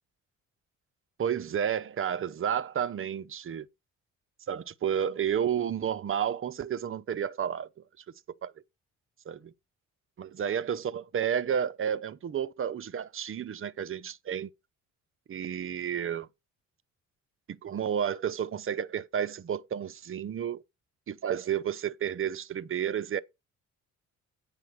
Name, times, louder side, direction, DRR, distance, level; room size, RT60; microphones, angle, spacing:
voice 1, 1.2-3.7 4.5-7.7 8.4-8.5 9.3-9.5 10.2-14.5 15.3-16.3 17.5-20.6 21.1-23.2, right 8 dB, 45° right, 0.9 m, -31 dB
9.5 x 5.4 x 6.5 m
cardioid pair, 90°, 30 cm